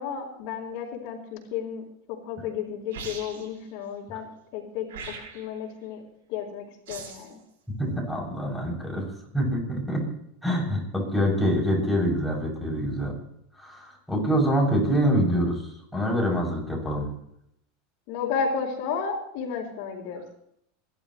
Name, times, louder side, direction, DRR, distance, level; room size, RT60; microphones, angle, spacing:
voice 1, 0.0-4.9 5.3-6.0 6.3-7.4 18.1-20.2, left 6 dB, 60° left, -5 dB, 4.2 m, -32 dB
sound 1, 2.9-3.6 4.9-5.6 6.9-7.3, right 5 dB, 80° right, 7.2 m, -40 dB
voice 2, 7.8-9.1 9.3-10.0 10.4-13.2 13.6-17.1, equal, ahead, -2 dB, 7.7 m, -25 dB
26.5 x 12.0 x 3.3 m, 0.73 s
hypercardioid pair, 105°, 0 cm